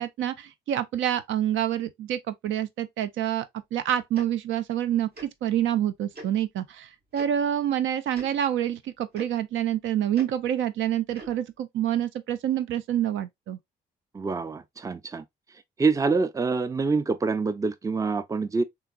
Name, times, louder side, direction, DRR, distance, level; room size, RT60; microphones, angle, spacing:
voice 1, 0.0-3.5 3.7-6.9 7.1-13.6, right 11 dB, 75° right, 0.5 m, -27 dB
Tick-tock, 4.1-4.3 5.1-5.3 6.1-6.3 7.1-7.3 8.1-8.3 9.1-9.3 10.1-10.3 11.1-11.3, right 1 dB, 55° right, 1.7 m, -42 dB
voice 2, 14.1-15.2 15.8-18.6, right 4 dB, 15° right, 0.4 m, -26 dB
3.4 x 3.0 x 2.3 m
supercardioid pair, 65°, 20 cm